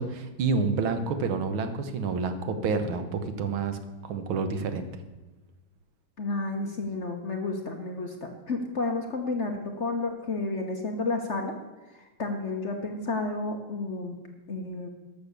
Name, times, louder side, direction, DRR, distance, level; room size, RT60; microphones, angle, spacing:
voice 1, 0.0-4.9, right 4 dB, 80° right, 9 dB, 1.8 m, -29 dB
voice 2, 6.2-11.5 11.9-14.2 14.5-14.9, left 3 dB, 45° left, 3 dB, 1.1 m, -31 dB
12.0 x 6.8 x 6.8 m, 1.2 s
omnidirectional pair, 2.2 m